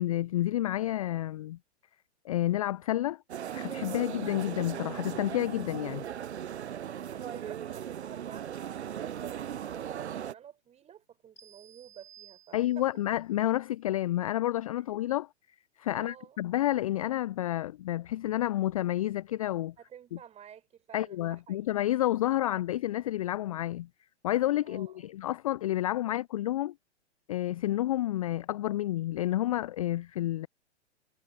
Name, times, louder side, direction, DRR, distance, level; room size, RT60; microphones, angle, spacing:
voice 1, 0.0-1.6 2.2-3.2 3.5-6.0 12.5-15.3 15.8-19.7 20.9-23.9 24.2-26.7 27.3-30.5, left 14 dB, 30° left, 0.4 m, -30 dB
sound 1, 3.3-10.3, right 9 dB, 70° right, 0.7 m, -38 dB
voice 2, 7.1-12.8 15.9-16.4 19.8-21.7 22.4-22.6 24.6-25.1, right 9 dB, 20° right, 4.2 m, -50 dB
sound 2, 11.4-13.1, right 8 dB, 70° left, 6.8 m, -56 dB
figure-of-eight pair, 115°, 35 cm